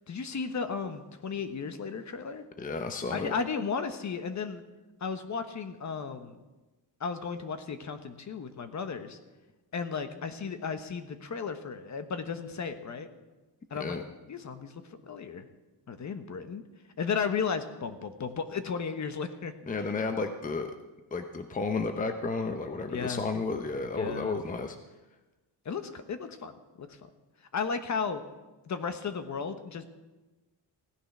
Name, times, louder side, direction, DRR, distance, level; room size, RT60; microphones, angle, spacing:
voice 1, 0.1-2.4 3.1-4.6 5.0-6.4 7.0-9.2 9.7-13.1 13.7-14.0 14.3-15.5 15.9-16.6 17.0-19.5 22.8-23.2 23.9-24.4 25.6-27.0 27.5-28.2 28.7-29.9, left 5 dB, 40° left, 9 dB, 1.2 m, -34 dB
voice 2, 2.6-3.3 13.8-14.0 19.7-20.7 21.1-24.8, left 4 dB, 20° left, 7 dB, 0.9 m, -32 dB
16.0 x 10.0 x 6.1 m, 1.1 s
cardioid pair, 115°, 43 cm